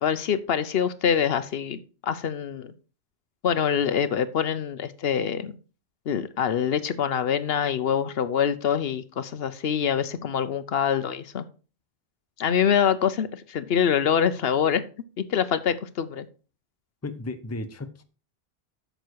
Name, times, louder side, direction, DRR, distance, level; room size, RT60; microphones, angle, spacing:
voice 1, 0.0-2.7 3.4-5.5 6.1-11.4 12.4-14.8 15.3-16.2, left 8 dB, 70° left, 13 dB, 0.9 m, -25 dB
voice 2, 17.0-18.0, left 2 dB, 15° left, 9 dB, 0.7 m, -34 dB
9.0 x 6.7 x 4.6 m, 0.36 s
omnidirectional pair, 1.1 m